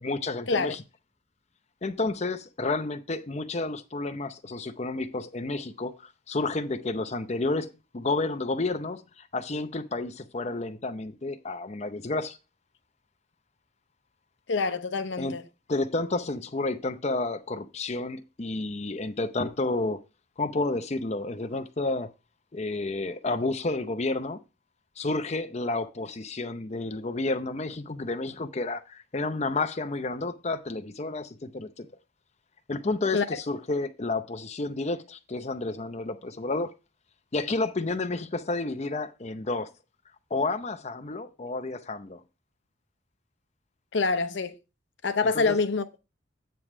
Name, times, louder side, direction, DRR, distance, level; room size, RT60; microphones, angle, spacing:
voice 1, 0.0-0.8 1.8-12.4 15.2-15.4 15.7-20.0 20.4-22.1 22.5-24.4 25.0-31.9 32.7-36.7 37.3-39.7 40.3-42.2 45.2-45.6, left 2 dB, 35° left, 0.6 m, -31 dB
voice 2, 14.5-15.4 33.1-33.2 43.9-44.5 45.0-46.0, left 4 dB, 70° left, 0.7 m, -26 dB
9.0 x 3.3 x 6.0 m
head